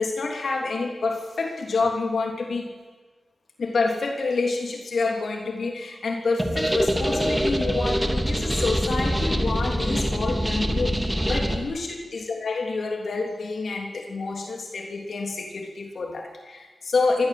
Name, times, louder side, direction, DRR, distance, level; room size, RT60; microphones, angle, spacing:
voice 1, 0.0-2.7 3.6-17.3, left 3 dB, 65° left, 2 dB, 3.2 m, -28 dB
sound 1, 6.4-11.6, equal, 5° right, 2.5 m, -24 dB
24.5 x 18.0 x 7.9 m, 1.4 s
wide cardioid pair, 100°, 0 cm